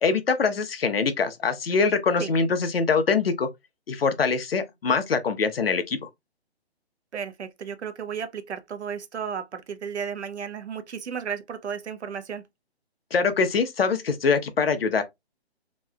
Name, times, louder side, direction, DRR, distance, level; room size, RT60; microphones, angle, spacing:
voice 1, 0.0-3.5 3.9-6.0 13.1-15.0, left 5 dB, 60° left, 0.7 m, -23 dB
voice 2, 7.1-12.4, right 7 dB, 85° right, 0.7 m, -34 dB
3.1 x 2.8 x 2.3 m
hypercardioid pair, 170°, 33 cm